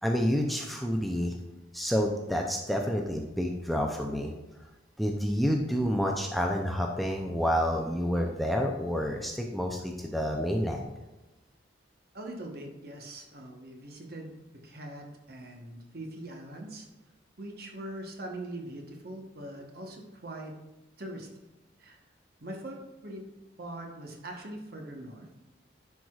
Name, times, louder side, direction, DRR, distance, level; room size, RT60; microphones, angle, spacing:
voice 1, 0.0-1.3 1.7-4.3 5.0-10.9, equal, ahead, 1 dB, 0.4 m, -29 dB
voice 2, 12.1-14.3 14.6-16.9 17.4-20.6 21.0-21.3 21.8-22.0 22.4-23.2 23.6-25.3, right 1 dB, 55° right, 2 dB, 1.1 m, -42 dB
10.0 x 4.7 x 2.4 m, 1.0 s
head